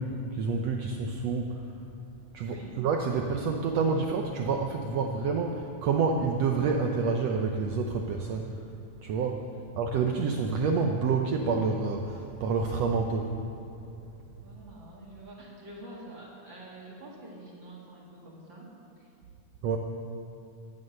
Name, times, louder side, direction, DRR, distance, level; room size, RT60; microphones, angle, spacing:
voice 1, 0.0-1.7 2.3-8.6 9.0-9.5 9.8-13.4 19.6-19.8, right 4 dB, 75° right, 3 dB, 1.5 m, -28 dB
voice 2, 2.4-2.8 9.3-9.6 14.4-18.7 19.0-19.1, right 1 dB, 40° right, -3 dB, 2.4 m, -47 dB
15.5 x 11.0 x 6.6 m, 2.6 s
omnidirectional pair, 3.8 m